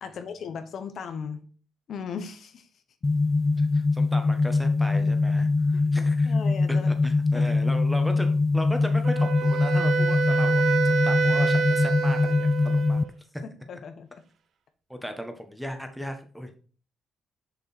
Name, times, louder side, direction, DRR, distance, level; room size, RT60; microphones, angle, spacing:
voice 1, 0.0-1.4 1.9-2.7 5.7-6.9 7.3-7.5 13.7-14.2, left 6 dB, 65° left, 9 dB, 0.9 m, -37 dB
sound 1, 3.0-13.0, left 3 dB, 25° left, 0.4 m, -23 dB
voice 2, 3.6-6.3 6.8-13.0 14.9-16.6, equal, ahead, 6 dB, 1.3 m, -37 dB
Wind instrument woodwind instrument, 9.0-13.1, right 7 dB, 70° right, 0.7 m, -27 dB
7.0 x 5.4 x 4.3 m, 0.40 s
cardioid pair, 90°, 0 cm